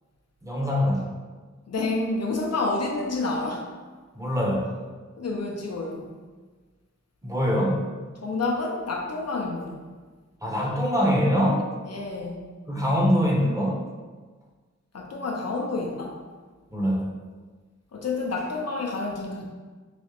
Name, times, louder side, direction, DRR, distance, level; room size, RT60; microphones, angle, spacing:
voice 1, 0.4-1.0 4.1-4.7 7.2-7.8 10.4-11.6 12.7-13.8 16.7-17.1, equal, 10° right, -4 dB, 0.7 m, -23 dB
voice 2, 1.7-3.7 5.2-6.1 8.2-9.8 11.8-12.4 14.9-16.2 17.9-19.4, left 3 dB, 60° left, 0 dB, 0.5 m, -29 dB
4.8 x 2.0 x 2.9 m, 1.4 s
wide cardioid pair, 85°, 30 cm